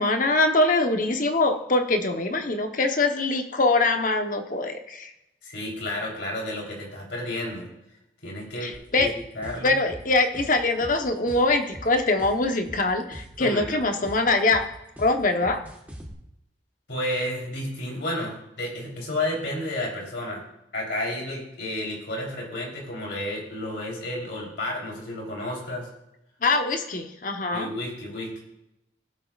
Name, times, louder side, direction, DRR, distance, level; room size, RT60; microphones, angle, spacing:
voice 1, 0.0-5.1 8.6-9.1 9.6-14.7 15.0-15.6 26.4-27.7, left 2 dB, 45° left, 6 dB, 1.0 m, -23 dB
voice 2, 5.4-7.7 8.2-9.1 9.3-9.7 13.4-13.7 16.9-20.4 20.7-25.9 27.5-28.4, left 1 dB, 70° left, -2 dB, 3.7 m, -31 dB
sound 1, 8.7-16.1, equal, 10° right, 1.4 m, -42 dB
17.5 x 7.8 x 2.5 m, 0.85 s
head